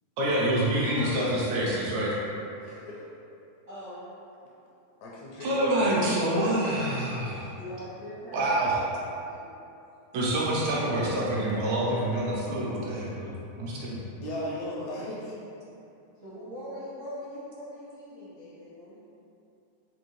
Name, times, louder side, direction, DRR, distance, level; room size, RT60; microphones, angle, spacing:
voice 1, 0.2-2.1 5.4-7.4 8.3-8.8 10.1-14.0, right 1 dB, 80° right, -6 dB, 1.8 m, -27 dB
voice 2, 0.8-1.4 2.6-3.0 5.0-7.0 7.3-7.4 14.2-15.3, left 1 dB, 80° left, -5 dB, 1.7 m, -37 dB
voice 3, 3.7-4.0 7.6-9.4 16.1-19.0, equal, 60° right, -16 dB, 0.9 m, -42 dB
5.2 x 2.6 x 3.0 m, 2.7 s
omnidirectional pair, 3.5 m